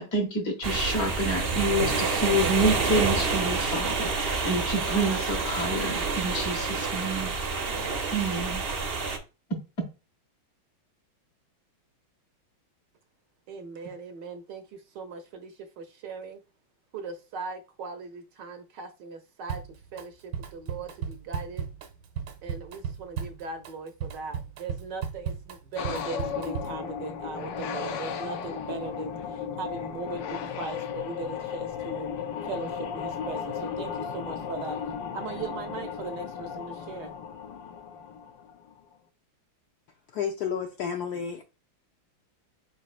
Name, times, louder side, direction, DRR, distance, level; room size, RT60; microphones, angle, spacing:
voice 1, 0.0-7.3 8.1-8.6, right 1 dB, 50° left, 1.6 m, -28 dB
sound 1, 0.6-9.2, right 4 dB, 55° right, 0.6 m, -28 dB
voice 2, 13.5-16.4 16.9-19.6 19.9-21.7 22.4-32.1 32.4-34.8 35.1-37.1, right 4 dB, 70° right, 1.1 m, -39 dB
Drum kit, 19.5-20.1 20.3-26.9, right 7 dB, 90° right, 1.7 m, -36 dB
sound 2, 25.8-38.7, left 7 dB, 70° left, 1.2 m, -35 dB
voice 3, 40.1-41.4, left 7 dB, 85° left, 0.8 m, -31 dB
4.8 x 4.2 x 2.4 m
omnidirectional pair, 2.2 m